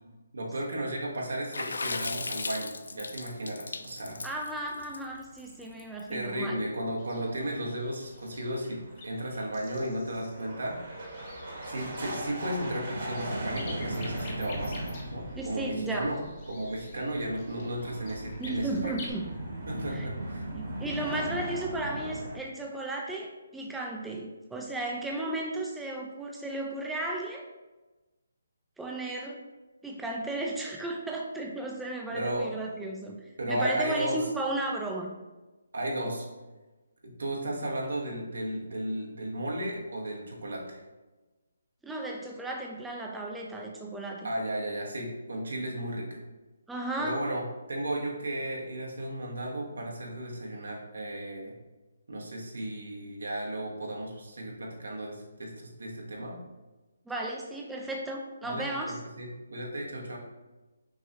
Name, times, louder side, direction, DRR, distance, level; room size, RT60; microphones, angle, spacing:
voice 1, 0.3-4.2 6.1-11.1 11.7-16.2 16.5-19.0 19.7-20.5 32.1-32.5 33.4-34.2 35.7-36.3 37.0-40.8 44.2-46.2 47.0-47.4 47.7-51.5 52.1-56.4 58.4-60.2, right 1 dB, 80° right, -1 dB, 1.1 m, -34 dB
Water / Splash splatter, 1.5-6.0, left 3 dB, 75° left, 0.3 m, -36 dB
sound 1, 4.1-5.7 6.0-6.1 6.5-6.6 7.0-22.4, right 1 dB, 60° right, 1.4 m, -39 dB
voice 2, 4.2-6.6 15.4-16.1 18.4-19.3 19.9-20.1 20.6-27.5 28.8-29.4 29.8-35.2 41.8-44.3 46.7-47.2 57.1-59.0, right 2 dB, 5° right, -1 dB, 0.3 m, -34 dB
sound 2, 7.0-19.1, left 3 dB, 35° left, 0.8 m, -49 dB
5.9 x 2.3 x 2.8 m, 1.1 s
hypercardioid pair, 155°, 0 cm